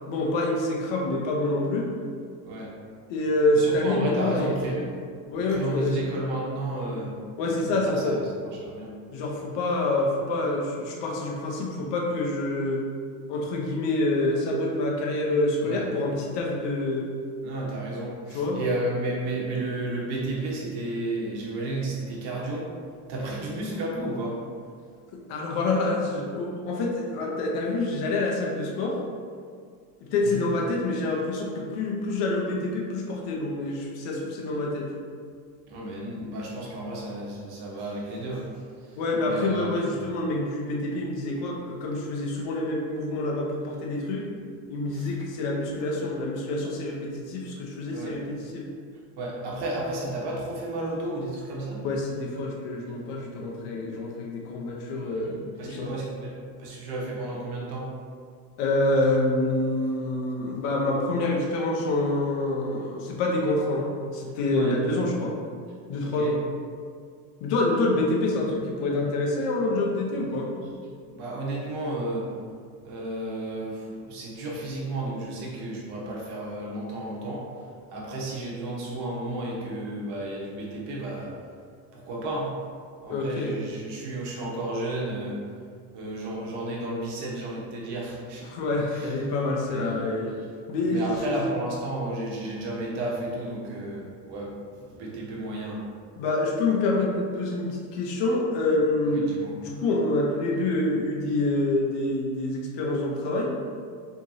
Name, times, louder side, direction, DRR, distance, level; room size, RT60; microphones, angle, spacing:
voice 1, 0.1-1.9 3.1-4.9 5.3-6.1 7.4-8.2 9.1-12.8 13.3-17.1 18.3-18.6 25.1-29.0 30.1-34.9 36.1-36.3 39.0-44.3 44.7-48.6 51.8-55.9 58.6-65.3 65.9-66.4 67.4-70.5 83.1-83.6 88.5-90.4 90.7-91.4 96.2-99.3 99.6-103.5, left 2 dB, 65° left, -2 dB, 1.0 m, -27 dB
voice 2, 3.5-4.8 5.5-7.2 7.4-8.2 8.7-8.9 15.6-15.9 17.4-22.7 23.1-24.4 30.2-30.4 35.7-38.6 39.2-39.8 44.9-45.1 47.9-48.2 49.2-51.8 55.2-56.3 56.6-57.9 64.5-64.8 66.0-66.3 71.1-72.3 72.8-77.4 77.9-81.3 81.9-82.6 83.0-85.4 85.9-88.5 88.9-89.1 89.7-90.0 90.9-95.8 99.2-99.5, right 2 dB, 55° right, -3 dB, 1.3 m, -32 dB
4.5 x 3.5 x 2.8 m, 2.1 s
supercardioid pair, 120°, 46 cm